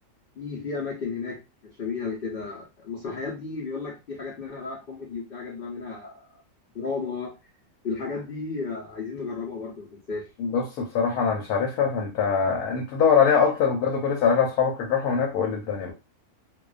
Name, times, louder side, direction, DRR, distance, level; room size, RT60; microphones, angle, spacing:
voice 1, 0.4-6.4 6.7-7.3 7.8-10.3, left 4 dB, 55° left, 0.6 m, -33 dB
voice 2, 10.4-15.9, left 6 dB, 85° left, 1.1 m, -23 dB
2.4 x 2.1 x 2.3 m
omnidirectional pair, 1.6 m